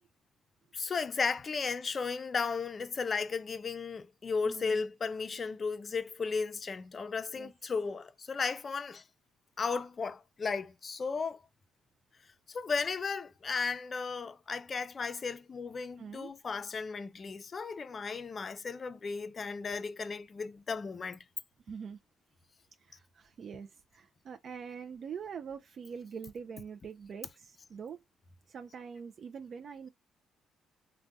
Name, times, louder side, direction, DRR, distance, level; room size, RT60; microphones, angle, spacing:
voice 1, 0.7-9.0 9.6-11.4 12.5-21.2, left 5 dB, 40° left, 0.4 m, -35 dB
voice 2, 4.4-4.9 7.3-7.5 13.0-13.1 16.0-16.3 21.7-22.0 22.8-28.0 28.5-29.9, right 6 dB, 55° right, 0.3 m, -44 dB
3.3 x 2.1 x 2.6 m
cardioid pair, 90°, 0 cm